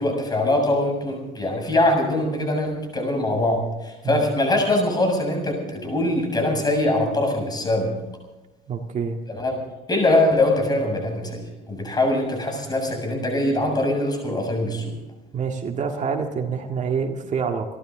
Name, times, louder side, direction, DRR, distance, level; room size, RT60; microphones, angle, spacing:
voice 1, 0.0-7.9 9.3-9.5 9.9-15.0, left 1 dB, 25° left, 2 dB, 7.3 m, -22 dB
voice 2, 8.7-9.2 15.3-17.6, right 6 dB, 45° right, 3 dB, 1.9 m, -26 dB
29.0 x 12.5 x 3.8 m, 1.1 s
cardioid pair, 110°, 17 cm